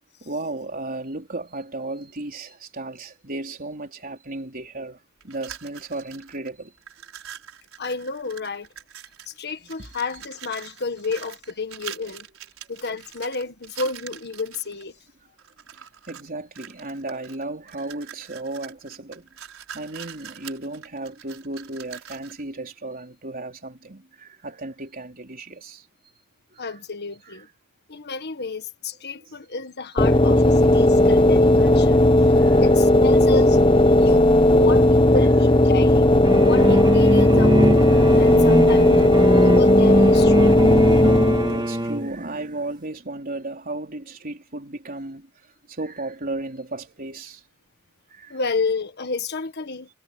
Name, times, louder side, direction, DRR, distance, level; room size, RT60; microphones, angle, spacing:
voice 1, 0.2-6.7 9.6-9.9 16.1-19.3 19.7-25.9 26.5-26.8 27.2-27.4 29.1-29.4 32.2-32.7 39.0-39.5 41.4-47.4 48.1-48.4, right 2 dB, 40° right, 4.0 m, -35 dB
sound 1, 5.2-6.5 6.8-9.4 9.7-14.8 15.4-16.3 16.5-22.4, right 9 dB, 70° right, 6.3 m, -43 dB
voice 2, 7.8-8.7 9.3-12.3 12.7-14.9 26.6-27.5 27.9-32.0 32.6-33.6 34.0-36.1 36.4-39.0 39.4-40.5 48.3-49.9, left 4 dB, 50° left, 1.6 m, -31 dB
sound 2, 30.0-41.7, left 1 dB, 25° left, 1.1 m, -16 dB
sound 3, 36.2-42.1, equal, 20° right, 2.4 m, -22 dB
head